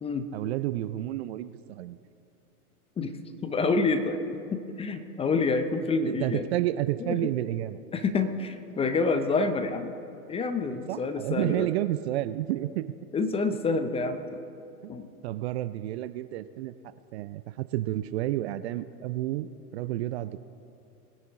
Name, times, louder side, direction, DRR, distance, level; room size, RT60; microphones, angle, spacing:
voice 1, 0.3-2.0 6.0-7.8 10.7-12.9 14.8-14.9 15.2-16.7 17.1-20.4, right 15 dB, 45° right, 14 dB, 0.5 m, -30 dB
voice 2, 3.4-4.2 4.5-6.5 7.0-7.2 7.9-9.9 10.3-11.7 13.1-14.4 14.9-15.1, left 4 dB, 15° left, 9 dB, 0.5 m, -27 dB
21.0 x 10.0 x 3.6 m, 2.7 s
hypercardioid pair, 100°, 46 cm